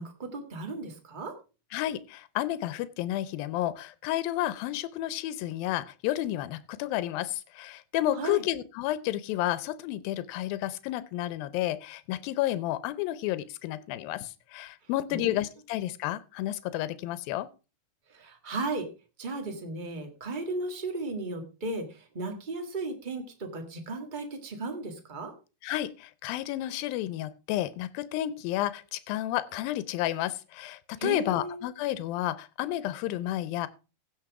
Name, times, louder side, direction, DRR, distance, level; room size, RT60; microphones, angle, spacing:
voice 1, 0.0-1.4 8.1-8.4 15.1-15.4 18.1-18.9 19.2-25.3 31.0-31.6, right 2 dB, 35° right, 0.8 m, -35 dB
voice 2, 1.7-17.5 25.6-33.7, left 14 dB, 90° left, 2.5 m, -31 dB
16.0 x 6.2 x 4.7 m
omnidirectional pair, 4.0 m